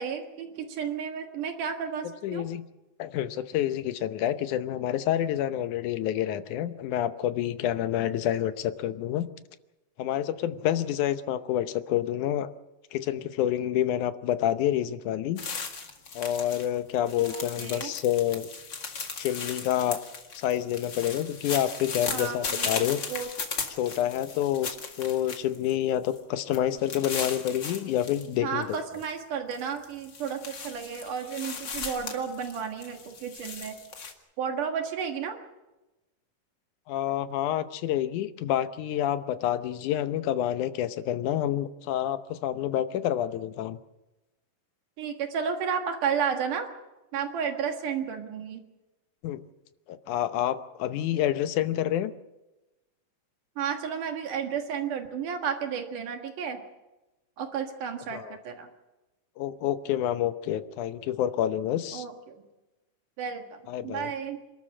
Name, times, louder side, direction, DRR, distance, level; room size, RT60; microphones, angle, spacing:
voice 1, 0.0-2.4 17.2-17.9 22.1-23.3 28.4-33.8 34.4-35.4 45.0-46.7 47.1-48.6 53.6-56.6 57.4-58.7 61.9-62.4 63.2-64.4, right 7 dB, 75° right, 5 dB, 3.2 m, -32 dB
voice 2, 2.2-2.6 3.0-9.3 10.0-12.5 12.9-15.4 16.2-18.5 19.2-20.0 20.3-23.0 23.8-28.8 36.9-43.8 49.2-49.4 49.9-52.1 58.1-58.4 59.4-62.1 63.7-64.1, left 11 dB, 75° left, 11 dB, 2.3 m, -28 dB
sound 1, 15.4-16.7 16.9-25.7 26.1-26.2 26.5-28.3 28.6-29.1 29.5-34.1, left 5 dB, 40° left, 2.3 m, -37 dB
27.0 x 13.0 x 8.7 m, 1.0 s
omnidirectional pair, 3.7 m